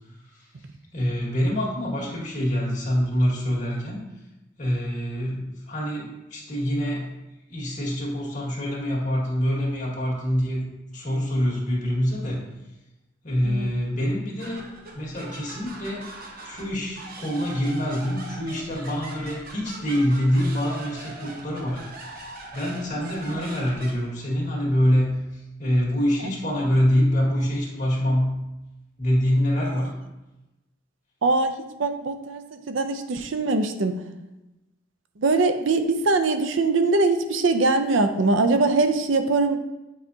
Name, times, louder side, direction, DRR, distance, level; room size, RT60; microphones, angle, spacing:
voice 1, 0.9-4.0 4.6-7.1 7.5-10.7 10.9-12.4 13.2-14.6 14.9-16.0 16.4-28.3 29.0-29.9, equal, 40° left, -3 dB, 1.9 m, -25 dB
sound 1, 14.4-23.9, right 2 dB, 50° right, 1.0 m, -41 dB
voice 2, 22.9-23.5 29.7-29.8 31.2-31.5 31.8-34.0 35.2-39.6, right 3 dB, 80° right, 8 dB, 0.6 m, -22 dB
8.2 x 4.9 x 2.8 m, 0.99 s
head